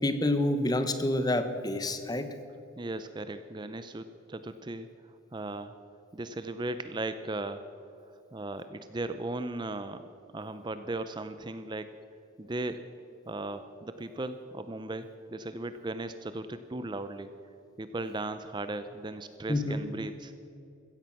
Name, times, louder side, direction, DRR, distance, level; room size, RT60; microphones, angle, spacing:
voice 1, 0.0-2.3 19.5-19.8, left 1 dB, 20° left, 10 dB, 1.0 m, -28 dB
voice 2, 2.8-5.7 6.1-7.6 8.1-10.0 10.3-11.9 12.4-12.8 13.3-17.3 17.8-20.3, right 2 dB, 20° right, 10 dB, 0.5 m, -37 dB
16.0 x 15.0 x 5.9 m, 2.8 s
head